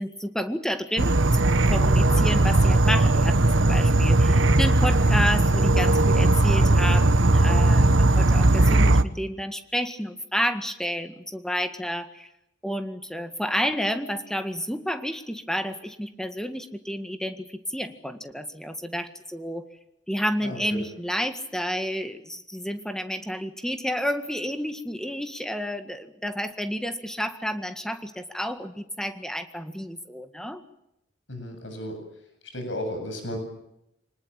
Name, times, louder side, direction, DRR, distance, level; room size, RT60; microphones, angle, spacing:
voice 1, 0.0-12.3 12.6-19.7 20.1-30.6, equal, 5° left, 8 dB, 1.8 m, -30 dB
Insect / Frog, 1.0-9.0, right 2 dB, 90° right, 1.2 m, -19 dB
voice 2, 31.3-32.0 32.5-33.4, left 1 dB, 80° left, 6 dB, 7.7 m, -33 dB
25.5 x 20.0 x 8.9 m, 0.81 s
head